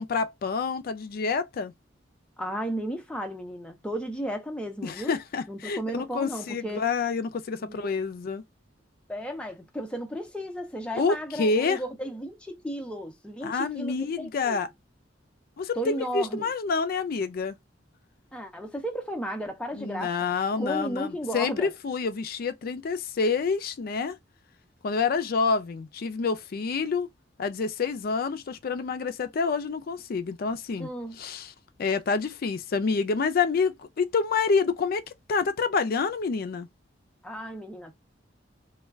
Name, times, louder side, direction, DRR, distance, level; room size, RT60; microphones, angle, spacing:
voice 1, 0.0-1.7 4.8-8.4 10.9-11.8 13.4-14.7 15.6-17.6 19.7-24.2 24.8-27.1 27.4-30.9 31.2-31.5 31.8-35.0 35.3-36.7, left 5 dB, 55° left, 0.4 m, -28 dB
voice 2, 2.4-5.1 5.5-6.9 7.5-7.9 9.1-14.6 15.8-16.5 18.3-20.2 20.6-21.7 30.8-31.2 37.2-37.9, right 1 dB, 5° left, 0.5 m, -34 dB
2.2 x 2.2 x 3.3 m
head